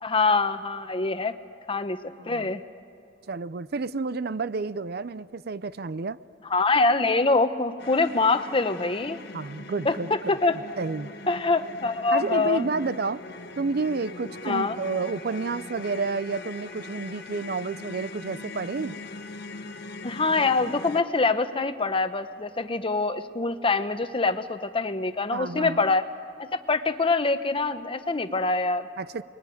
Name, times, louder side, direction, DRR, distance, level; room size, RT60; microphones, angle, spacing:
voice 1, 0.0-1.3 1.7-2.6 6.5-9.2 9.8-10.6 11.3-12.7 14.4-14.8 20.0-26.1 26.4-28.9, left 3 dB, 30° left, 10 dB, 1.0 m, -24 dB
voice 2, 2.2-2.6 3.3-6.2 9.3-10.4 10.8-11.1 12.1-13.2 13.6-18.9 25.3-25.8 29.0-29.2, right 4 dB, 60° right, 16 dB, 0.6 m, -30 dB
sound 1, 7.8-21.0, left 2 dB, 65° left, 1.3 m, -41 dB
29.5 x 21.5 x 9.3 m, 2.4 s
head